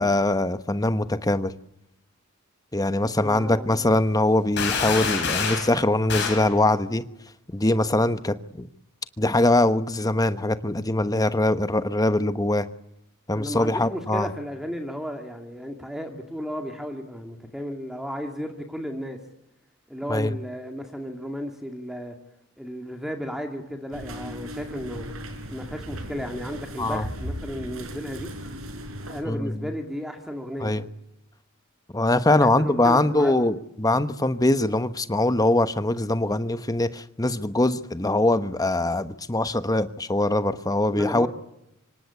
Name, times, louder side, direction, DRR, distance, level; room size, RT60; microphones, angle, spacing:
voice 1, 0.0-1.5 2.7-7.0 7.5-8.7 9.2-12.7 13.3-14.3 20.1-20.3 26.8-27.1 29.3-29.5 30.6-30.9 31.9-41.3, left 2 dB, 15° left, 1.1 m, -22 dB
voice 2, 3.2-3.9 13.3-19.2 19.9-22.1 22.6-25.1 25.5-28.3 29.1-30.7 32.3-33.4 40.9-41.3, equal, ahead, 2.4 m, -34 dB
sound 1, 4.6-5.7 6.1-6.5, left 5 dB, 55° left, 7.1 m, -26 dB
sound 2, 23.9-29.2, equal, 70° right, 5.2 m, -37 dB
26.0 x 24.5 x 8.3 m
head